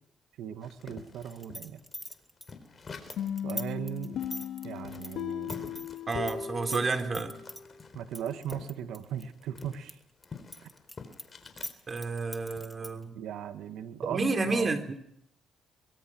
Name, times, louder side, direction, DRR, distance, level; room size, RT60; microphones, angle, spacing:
voice 1, 0.4-1.8 3.4-4.2 4.6-5.7 6.7-6.9 7.9-10.0 10.6-10.7 13.1-14.7, right 9 dB, 85° right, 8 dB, 2.0 m, -38 dB
sound 1, 0.6-3.4 3.8-3.9 4.1-8.7 9.0-11.8 12.2-12.6, left 4 dB, 35° left, 4.2 m, -47 dB
sound 2, 1.2-6.3 6.6-7.6 8.1-9.9 10.2-13.0, equal, ahead, 2.6 m, -42 dB
sound 3, 3.2-7.9, left 9 dB, 80° left, 2.8 m, -37 dB
voice 2, 6.1-7.3 11.9-13.1 14.1-15.0, right 3 dB, 35° right, 6 dB, 3.5 m, -30 dB
23.5 x 22.5 x 6.3 m, 0.74 s
cardioid pair, 90°, 0 cm